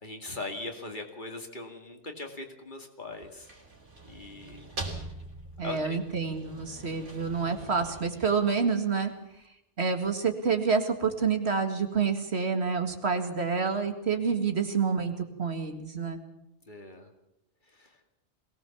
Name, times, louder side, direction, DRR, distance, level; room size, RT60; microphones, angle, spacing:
voice 1, 0.0-3.5 4.0-4.7 5.6-6.0 16.7-17.1 17.6-18.0, left 2 dB, 45° left, 3 dB, 2.5 m, -40 dB
sound 1, 3.1-9.1, right 2 dB, 90° right, 3.8 m, -43 dB
voice 2, 5.6-9.1 9.8-16.2, right 5 dB, 65° right, 6 dB, 2.2 m, -28 dB
22.0 x 18.0 x 7.2 m, 0.86 s
omnidirectional pair, 1.2 m